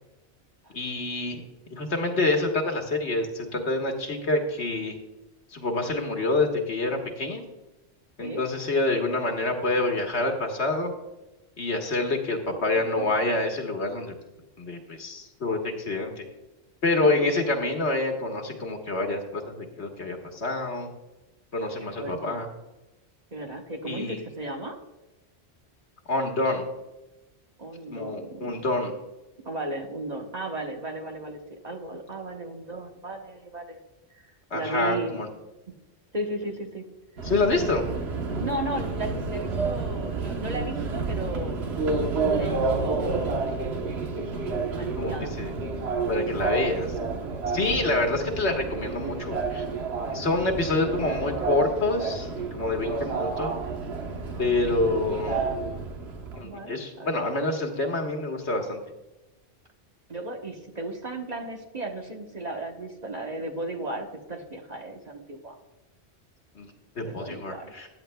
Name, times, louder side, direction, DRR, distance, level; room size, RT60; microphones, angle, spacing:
voice 1, 0.7-1.4 1.7-5.0 5.5-7.4 8.2-10.9 11.6-14.1 14.6-16.3 16.8-20.9 21.5-22.5 23.8-24.2 26.1-26.7 27.9-28.9 34.5-35.3 37.2-37.8 45.0-45.5 46.1-46.9 47.5-49.6 50.1-53.5 54.4-55.4 56.4-58.8 66.6-67.9, left 2 dB, 80° left, 2 dB, 1.7 m, -27 dB
voice 2, 12.9-13.3 17.0-17.2 21.8-22.4 23.3-24.8 27.6-28.6 29.4-33.8 34.1-34.3 34.5-35.2 35.7-35.8 36.1-36.9 38.4-41.6 42.3-43.6 44.8-45.3 46.3-46.4 50.2-50.8 54.3-54.7 56.4-57.2 60.1-65.6 67.0-67.7, right 1 dB, 40° right, 2 dB, 1.2 m, -35 dB
Subway metro underground, 37.2-56.4, right 4 dB, 70° right, 1.3 m, -30 dB
15.0 x 10.5 x 2.3 m, 1.0 s
omnidirectional pair, 1.1 m